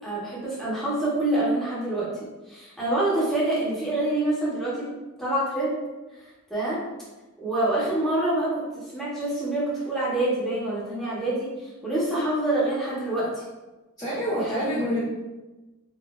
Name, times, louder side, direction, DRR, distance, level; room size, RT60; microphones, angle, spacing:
voice 1, 0.0-2.1 2.5-4.9 5.2-5.8 6.5-6.8 7.4-8.5 8.9-13.4 14.4-14.6, right 1 dB, ahead, -9 dB, 1.1 m, -26 dB
voice 2, 14.0-15.0, equal, 15° left, -11 dB, 0.7 m, -27 dB
4.0 x 2.6 x 2.5 m, 1.1 s
head